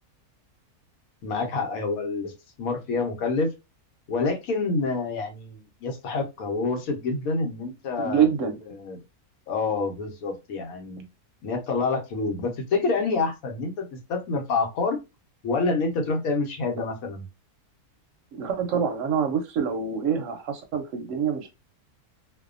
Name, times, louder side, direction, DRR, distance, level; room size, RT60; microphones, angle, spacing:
voice 1, 1.2-2.3 2.6-3.5 4.1-9.0 9.5-11.0 11.4-15.0 15.4-17.2, left 3 dB, 75° left, 3 dB, 1.1 m, -27 dB
voice 2, 8.0-8.6 18.4-21.5, right 7 dB, 70° right, 6 dB, 0.8 m, -26 dB
2.6 x 2.1 x 2.4 m, 0.24 s
omnidirectional pair, 1.5 m